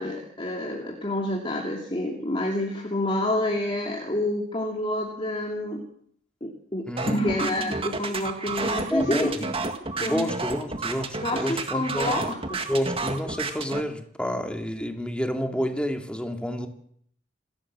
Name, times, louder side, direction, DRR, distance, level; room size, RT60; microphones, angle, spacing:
voice 1, 0.0-5.8 6.4-9.5 10.0-10.3 11.2-12.6, left 1 dB, 30° left, 0 dB, 2.5 m, -28 dB
voice 2, 6.9-7.4 8.9-9.3 10.0-12.1 12.7-16.7, equal, 5° left, 4 dB, 2.5 m, -29 dB
sound 1, 7.0-13.8, right 3 dB, 30° right, 2.0 m, -30 dB
27.0 x 13.0 x 7.5 m, 0.64 s
head